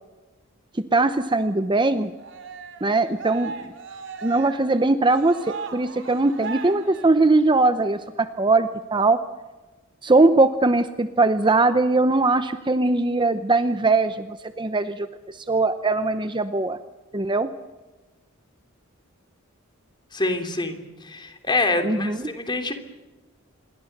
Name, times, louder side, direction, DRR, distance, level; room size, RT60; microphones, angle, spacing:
voice 1, 0.7-2.1 2.8-3.7 4.2-9.2 10.0-16.8 17.1-17.5 21.8-22.3, right 3 dB, 20° right, 10 dB, 0.8 m, -21 dB
Cheering, 2.2-7.7, right 5 dB, 60° right, 3.2 m, -38 dB
voice 2, 20.1-22.7, left 2 dB, 20° left, 6 dB, 3.1 m, -26 dB
27.0 x 22.5 x 6.7 m, 1.2 s
head